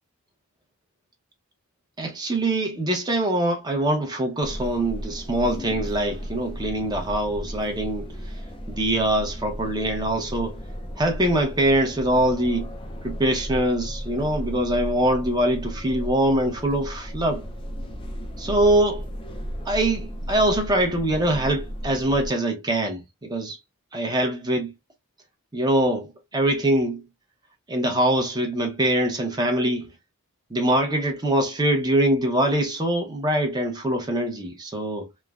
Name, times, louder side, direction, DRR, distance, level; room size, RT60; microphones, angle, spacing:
voice 1, 2.0-8.4 8.7-10.6 11.0-12.7 13.0-17.5 18.4-19.0 19.7-23.6 23.9-24.7 25.5-27.0 27.7-29.9 30.5-35.1, right 1 dB, 20° right, 0.7 m, -23 dB
sound 1, 4.4-22.3, equal, 25° left, 0.4 m, -35 dB
3.2 x 2.2 x 2.3 m
head